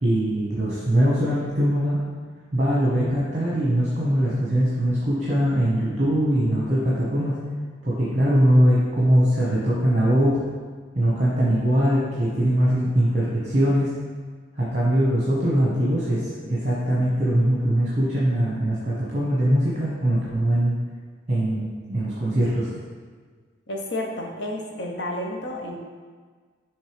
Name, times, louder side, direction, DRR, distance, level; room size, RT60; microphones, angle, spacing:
voice 1, 0.0-2.0 2.5-7.4 7.8-10.4 10.9-13.9 14.5-20.8 21.3-22.7, equal, 35° right, -6 dB, 1.1 m, -21 dB
voice 2, 23.7-25.8, left 1 dB, 70° left, 0 dB, 1.0 m, -31 dB
6.4 x 3.4 x 5.1 m, 1.5 s
head